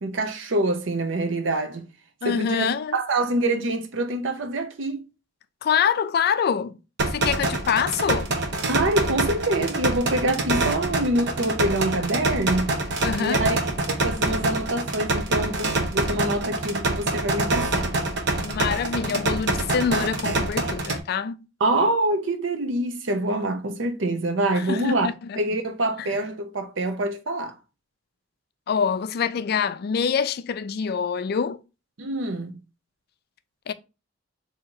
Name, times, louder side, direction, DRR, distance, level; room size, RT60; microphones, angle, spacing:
voice 1, 0.0-1.9 2.2-5.0 8.7-12.8 13.2-13.6 13.9-17.9 21.6-25.1 25.4-27.5 32.0-32.5, right 2 dB, 90° right, 0.7 m, -25 dB
voice 2, 2.2-3.0 5.6-6.8 7.1-8.3 13.0-13.5 18.4-21.4 24.5-25.4 26.0-26.2 28.7-31.6 33.7-33.8, left 7 dB, 55° left, 0.4 m, -25 dB
sound 1, 7.0-21.0, right 2 dB, 65° right, 0.8 m, -26 dB
3.7 x 2.8 x 4.5 m
head